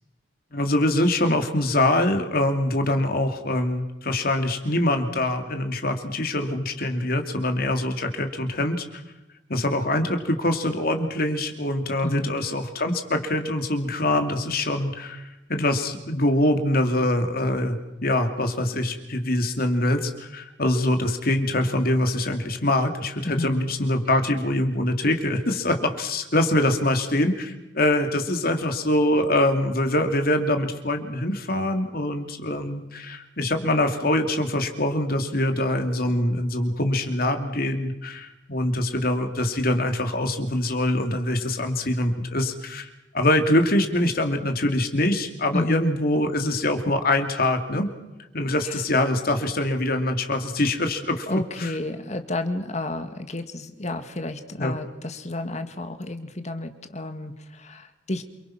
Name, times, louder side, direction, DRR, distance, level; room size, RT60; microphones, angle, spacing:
voice 1, 0.5-9.0 9.5-42.9 43.1-47.9 48.3-51.7 54.6-54.7, left 1 dB, 55° left, 6 dB, 2.8 m, -24 dB
voice 2, 12.0-12.4 23.2-23.6 45.5-45.9 48.6-48.8 51.3-58.2, left 1 dB, 40° left, 8 dB, 2.0 m, -31 dB
28.5 x 23.5 x 6.0 m, 0.99 s
head